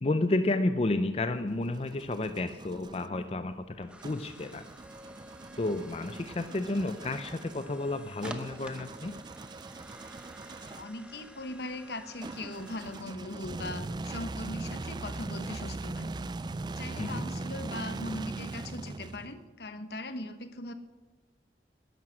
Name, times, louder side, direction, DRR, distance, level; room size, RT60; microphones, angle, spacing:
voice 1, 0.0-4.6 5.6-9.1 17.0-17.3, left 2 dB, 35° left, 10 dB, 0.5 m, -31 dB
sound 1, 1.3-3.1 4.0-11.0 12.2-19.5, right 3 dB, 25° right, 0.3 m, -40 dB
sound 2, 3.6-15.4, right 1 dB, 5° right, 0.9 m, -52 dB
voice 2, 10.6-16.1 16.8-20.7, left 1 dB, 65° left, 10 dB, 1.1 m, -40 dB
12.0 x 11.0 x 7.5 m, 1.3 s
head